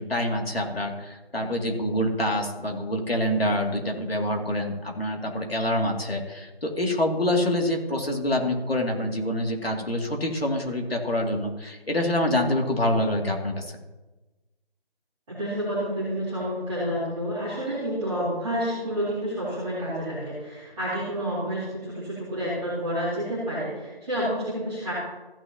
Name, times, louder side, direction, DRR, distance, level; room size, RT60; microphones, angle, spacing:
voice 1, 0.0-13.7, left 1 dB, 75° left, 1 dB, 2.6 m, -26 dB
voice 2, 15.3-24.9, equal, 5° right, -18 dB, 2.1 m, -29 dB
15.0 x 9.8 x 2.9 m, 1.1 s
figure-of-eight pair, 175°, 31 cm